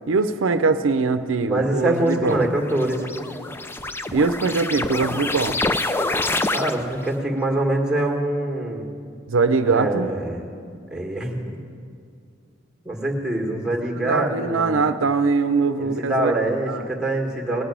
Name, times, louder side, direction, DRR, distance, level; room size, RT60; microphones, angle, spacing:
voice 1, 0.1-2.4 4.1-5.6 9.3-10.1 14.0-16.3 16.7-16.8, right 4 dB, 90° right, 10 dB, 0.6 m, -22 dB
voice 2, 1.4-3.1 6.5-8.9 9.7-10.4 10.9-11.6 12.8-14.9 15.8-17.6, right 1 dB, 5° right, 0 dB, 1.6 m, -24 dB
sound 1, 2.1-7.1, left 2 dB, 10° left, 0.4 m, -27 dB
18.0 x 6.1 x 9.7 m, 2.3 s
head